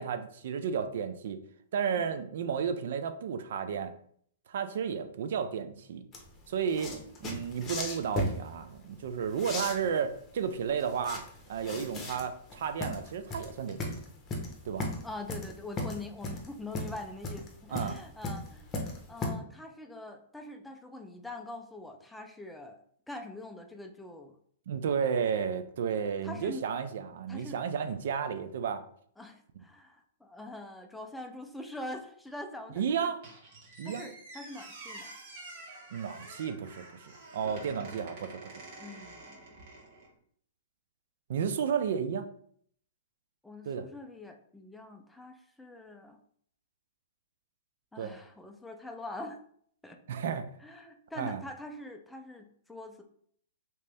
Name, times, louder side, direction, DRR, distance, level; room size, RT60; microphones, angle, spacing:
voice 1, 0.0-1.4 1.7-3.9 4.5-6.0 6.5-6.9 7.2-11.2 11.5-14.0 14.6-14.9 17.7-18.0 24.7-28.8 32.8-33.2 33.8-34.1 35.9-38.6 41.3-42.3 43.6-43.9 48.0-48.2 50.1-50.5 51.2-51.4, right 7 dB, 65° right, 9 dB, 0.4 m, -32 dB
sound 1, 6.1-19.3, left 2 dB, 20° left, 0.8 m, -37 dB
voice 2, 15.0-18.8 19.1-22.8 23.1-24.4 26.2-26.7 27.3-27.6 29.2-33.1 33.8-35.1 38.8-39.5 43.4-46.2 47.9-49.4 49.8-50.0 50.6-53.0, left 1 dB, 5° left, 5 dB, 0.4 m, -44 dB
Squeak, 33.2-40.1, right 2 dB, 50° right, 1.4 m, -48 dB
3.2 x 2.9 x 3.3 m, 0.62 s
hypercardioid pair, 140°, 0 cm